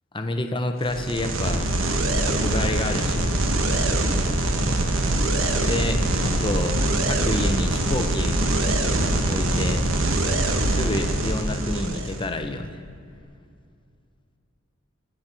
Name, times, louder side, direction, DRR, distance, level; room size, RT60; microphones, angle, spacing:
voice 1, 0.1-1.7 2.2-3.3 5.5-8.4 9.3-9.9 10.7-12.8, left 2 dB, 25° left, 6 dB, 0.8 m, -29 dB
sound 1, 0.8-12.2, right 1 dB, 75° right, 1.2 m, -23 dB
23.0 x 7.7 x 4.4 m, 2.3 s
head